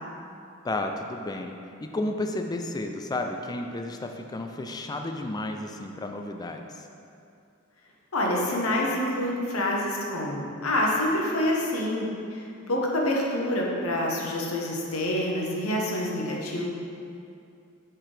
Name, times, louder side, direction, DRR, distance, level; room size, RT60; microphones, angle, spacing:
voice 1, 0.6-1.5 1.8-6.9, left 2 dB, 20° left, 4 dB, 0.3 m, -32 dB
voice 2, 8.1-16.6, left 1 dB, 75° left, -2 dB, 1.0 m, -27 dB
7.3 x 4.7 x 3.3 m, 2.6 s
head